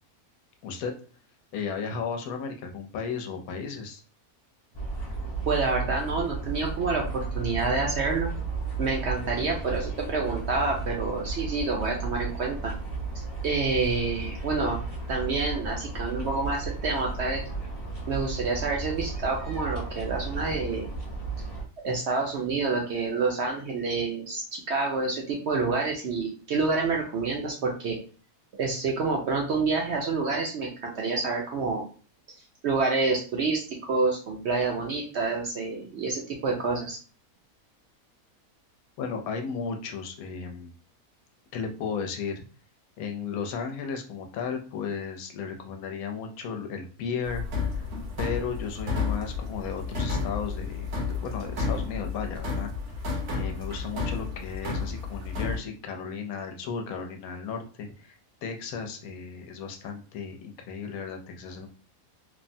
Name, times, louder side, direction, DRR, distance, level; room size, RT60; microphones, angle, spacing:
voice 1, 0.6-0.9 1.5-4.0 39.0-40.7 41.5-42.4 43.0-47.4 47.7-47.9 48.2-52.7 53.3-61.7, left 6 dB, 80° left, 5 dB, 1.0 m, -34 dB
sound 1, 4.7-21.6, right 3 dB, 25° left, 0.5 m, -34 dB
voice 2, 5.4-8.3 8.8-12.7 13.1-14.8 15.1-17.4 18.1-20.9 21.8-28.0 28.6-31.8 32.6-33.6 33.9-37.0, right 4 dB, 65° right, 0 dB, 0.7 m, -28 dB
sound 2, 47.2-55.6, left 4 dB, 85° right, 1.3 m, -31 dB
3.1 x 2.1 x 2.6 m, 0.38 s
omnidirectional pair, 1.5 m